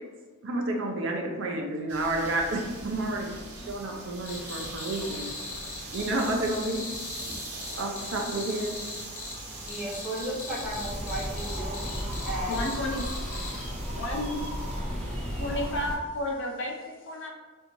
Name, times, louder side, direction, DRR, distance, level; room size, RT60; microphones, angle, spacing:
voice 1, 0.4-3.3 3.7-5.3 5.9-6.8 7.8-8.7, right 2 dB, 60° right, 1 dB, 0.6 m, -30 dB
sound 1, 1.9-14.8, right 2 dB, 90° right, 0.8 m, -43 dB
Cricket, 4.3-13.6, left 3 dB, 80° left, 1.0 m, -40 dB
voice 2, 9.6-12.9, right 1 dB, ahead, -9 dB, 0.9 m, -35 dB
sound 2, 10.6-16.0, equal, 30° right, 1.2 m, -34 dB
voice 3, 12.5-13.1 13.9-14.4 15.4-17.3, left 1 dB, 60° left, 0 dB, 0.5 m, -32 dB
3.4 x 2.7 x 3.0 m, 1.4 s
head